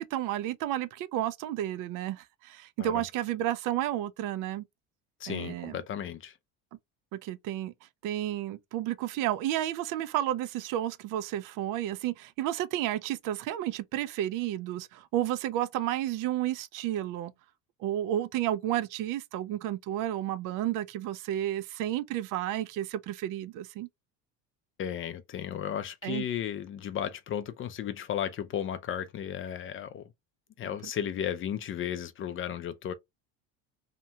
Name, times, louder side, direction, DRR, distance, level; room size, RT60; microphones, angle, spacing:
voice 1, 0.0-4.6 5.3-5.8 7.1-7.7 8.0-17.3 17.8-23.9 26.0-26.2, right 13 dB, 60° right, 0.4 m, -31 dB
voice 2, 5.2-6.4 24.8-30.1 30.6-32.9, left 9 dB, 35° left, 0.4 m, -34 dB
2.9 x 2.2 x 2.7 m
supercardioid pair, 105°, 37 cm